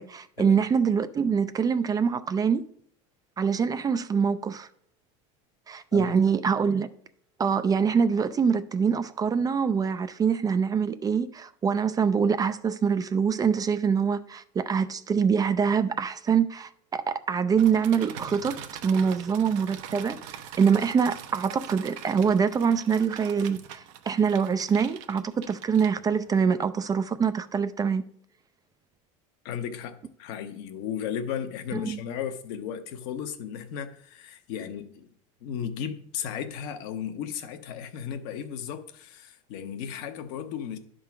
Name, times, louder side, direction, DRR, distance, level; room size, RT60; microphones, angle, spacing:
voice 1, 0.0-2.6 3.4-4.7 5.7-6.9 7.4-20.2 20.6-28.0 31.7-32.0, right 6 dB, 20° right, 0.4 m, -24 dB
sound 1, 17.6-26.3, right 9 dB, 70° right, 0.9 m, -43 dB
voice 2, 29.4-35.1 35.4-40.8, left 8 dB, 65° left, 1.0 m, -35 dB
10.5 x 3.8 x 5.9 m
supercardioid pair, 110°, 17 cm